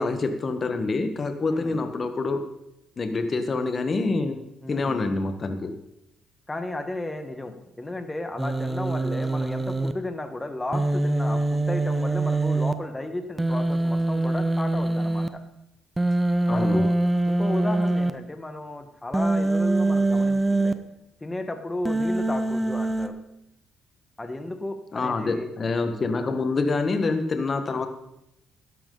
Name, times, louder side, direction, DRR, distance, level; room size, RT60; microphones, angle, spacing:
voice 1, 0.0-2.4 3.0-4.4 4.7-5.7 16.5-16.9 24.9-27.9, left 3 dB, 35° left, 7 dB, 1.3 m, -26 dB
voice 2, 1.4-1.8 4.6-5.0 6.5-15.4 16.5-16.9 17.3-20.7 21.2-23.2 24.2-25.5, left 2 dB, 15° left, 7 dB, 1.4 m, -34 dB
Human voice, 8.4-9.9 10.7-12.7 13.4-15.3 16.0-18.1 19.1-20.7 21.9-23.1, right 2 dB, 10° right, 0.7 m, -24 dB
12.5 x 11.0 x 3.9 m, 0.83 s
cardioid pair, 110°, 0 cm